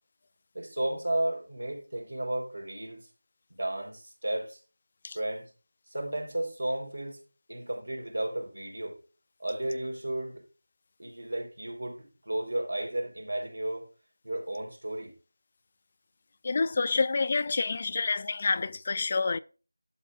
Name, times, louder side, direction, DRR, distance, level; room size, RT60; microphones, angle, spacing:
voice 1, 0.5-3.1 3.5-4.6 5.1-5.5 5.9-7.2 7.5-9.0 9.4-10.4 11.0-13.9 14.2-15.1, right 1 dB, 80° right, 4.0 m, -33 dB
voice 2, 16.4-19.4, left 4 dB, 30° left, 0.3 m, -28 dB
12.0 x 7.1 x 2.5 m
figure-of-eight pair, 175°, 0 cm